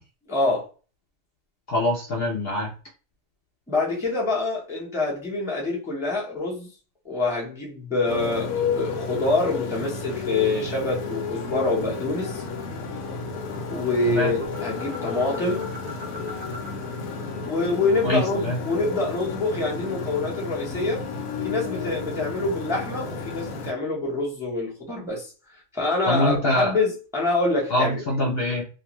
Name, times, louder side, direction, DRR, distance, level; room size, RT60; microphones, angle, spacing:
voice 1, 0.3-0.7 3.7-6.7 7.0-12.4 13.7-15.7 17.4-21.0 21.4-28.0, left 3 dB, 5° right, 0.6 m, -26 dB
voice 2, 1.7-2.7 14.1-14.3 18.0-18.6 26.1-26.7 27.7-28.6, left 1 dB, 60° left, 0.7 m, -24 dB
Motorcycle, 8.1-23.7, left 5 dB, 90° left, 1.1 m, -32 dB
sound 1, 14.4-17.0 17.3-19.6, left 2 dB, 75° right, 1.0 m, -43 dB
2.5 x 2.2 x 2.9 m
omnidirectional pair, 1.4 m